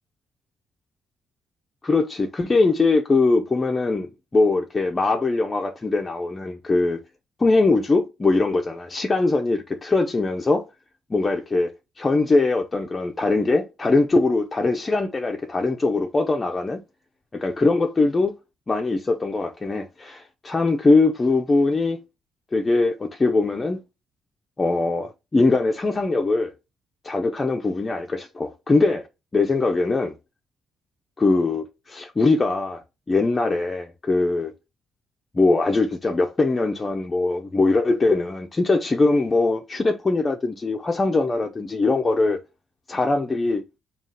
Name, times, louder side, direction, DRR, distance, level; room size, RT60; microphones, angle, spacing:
voice 1, 1.8-7.0 7.4-10.6 11.1-16.8 17.3-18.3 18.7-22.0 22.5-23.8 24.6-26.5 27.0-29.0 29.3-30.1 31.2-32.8 33.1-34.5 35.3-42.4 42.9-43.6, left 3 dB, 25° left, 0.5 m, -21 dB
3.6 x 2.4 x 4.0 m
cardioid pair, 90°, 0 cm